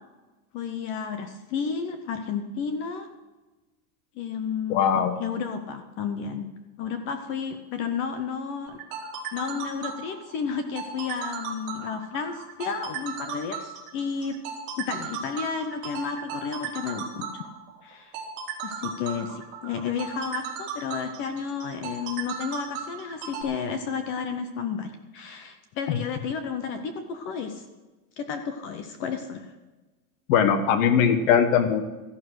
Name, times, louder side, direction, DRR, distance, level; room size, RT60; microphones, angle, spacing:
voice 1, 0.5-3.1 4.2-6.5 6.8-8.8 9.3-14.4 14.8-17.4 17.8-18.2 18.6-27.6 28.2-29.5, left 6 dB, 25° left, 8 dB, 0.7 m, -32 dB
voice 2, 4.7-5.2 30.3-31.9, left 7 dB, 55° left, 10 dB, 1.3 m, -20 dB
sound 1, 8.7-23.4, right 7 dB, 40° right, 3.2 m, -36 dB
14.0 x 11.0 x 6.3 m, 1.2 s
supercardioid pair, 180°, 48 cm